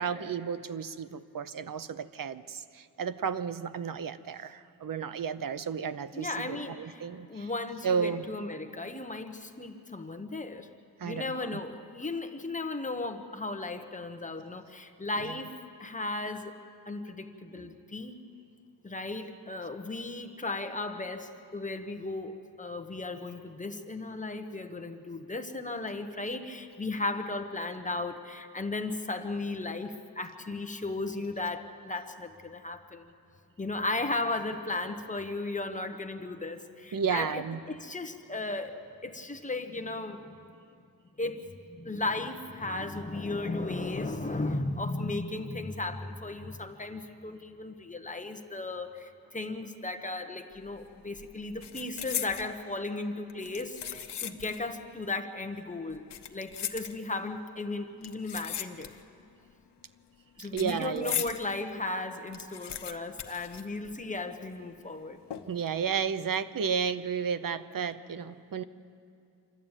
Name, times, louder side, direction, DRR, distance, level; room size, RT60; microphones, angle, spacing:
voice 1, 0.0-7.5 7.8-8.2 11.0-11.6 15.3-15.4 17.5-17.7 36.9-37.6 60.4-61.2 65.5-68.6, right 6 dB, 55° right, 13 dB, 0.8 m, -33 dB
voice 2, 6.1-10.7 11.0-15.5 15.8-16.5 16.9-18.2 18.8-33.0 33.6-38.8 39.0-40.4 41.2-56.0 56.3-58.9 60.4-65.2, left 2 dB, 20° left, 6 dB, 1.2 m, -35 dB
sound 1, 50.6-50.8 51.1-52.5 53.3-54.7 55.0-55.1 55.9-57.3 58.0-59.2 59.5-61.4 61.8-61.9 62.1-64.3 64.5-64.6 65.3-65.7 66.1-66.4, left 9 dB, 85° left, 1.0 m, -38 dB
27.0 x 12.5 x 9.0 m, 2.5 s
wide cardioid pair, 125°, 40 cm